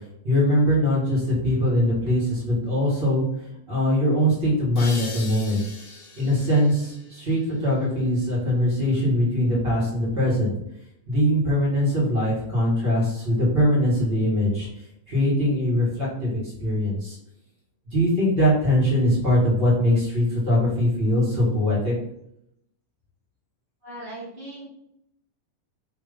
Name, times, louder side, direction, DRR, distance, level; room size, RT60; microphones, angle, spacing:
voice 1, 0.2-3.2 3.7-5.6 6.1-10.5 11.1-14.7 15.1-17.2 17.9-21.9, equal, 20° right, -5 dB, 1.6 m, -22 dB
sound 1, 4.7-8.1, left 3 dB, 55° left, 1.8 m, -41 dB
voice 2, 23.8-24.7, right 1 dB, 80° right, -5 dB, 0.9 m, -38 dB
6.1 x 3.0 x 5.3 m, 0.78 s
omnidirectional pair, 3.9 m